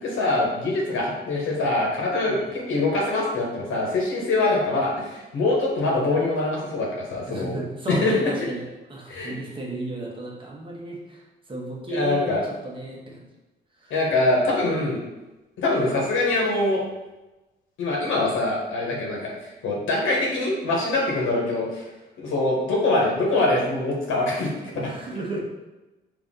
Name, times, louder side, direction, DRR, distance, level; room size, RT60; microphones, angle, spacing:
voice 1, 0.0-7.5 7.9-8.3 9.1-9.3 11.9-12.4 13.9-15.0 15.6-16.8 17.8-19.3 19.6-21.9 22.2-24.9, left 2 dB, 80° left, -3 dB, 1.2 m, -24 dB
voice 2, 7.3-8.6 8.9-11.2 11.5-13.3 13.8-14.0 24.7-25.4, right 1 dB, 25° right, -3 dB, 1.0 m, -33 dB
4.1 x 2.7 x 3.7 m, 1.1 s
cardioid pair, 90°, 20 cm